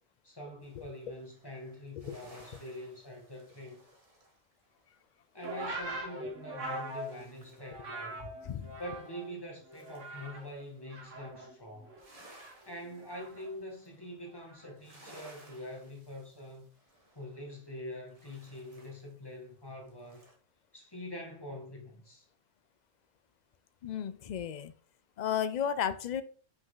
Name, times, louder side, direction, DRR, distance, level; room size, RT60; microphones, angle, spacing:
voice 1, 0.2-3.8 5.3-8.3 8.8-11.9 12.7-16.7 17.2-20.2 20.7-22.3, left 1 dB, 20° left, 1.8 m, -44 dB
sound 1, 0.6-7.9 8.2-10.9 11.3-20.3, right 1 dB, 30° right, 1.4 m, -60 dB
sound 2, 5.4-9.3 9.7-10.5 10.9-13.5 14.4-14.7, right 1 dB, 90° right, 1.9 m, -42 dB
voice 2, 8.4-8.8 23.8-24.7 25.2-26.2, left 8 dB, 55° left, 0.5 m, -34 dB
5.6 x 5.4 x 3.8 m
omnidirectional pair, 1.3 m